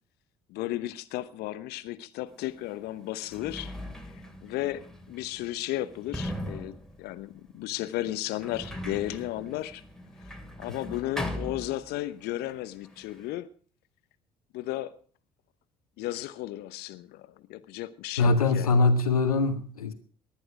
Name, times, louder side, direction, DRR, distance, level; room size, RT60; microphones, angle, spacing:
voice 1, 0.5-3.7 4.1-9.8 10.6-13.5 14.5-14.9 16.0-18.8, left 15 dB, 65° left, 1.0 m, -34 dB
Sliding door, 2.4-2.5 3.1-12.3 12.5-13.3, equal, 5° left, 2.9 m, -40 dB
voice 2, 18.2-19.9, left 3 dB, 85° left, 1.3 m, -23 dB
19.0 x 11.5 x 4.9 m
figure-of-eight pair, 50°, 18 cm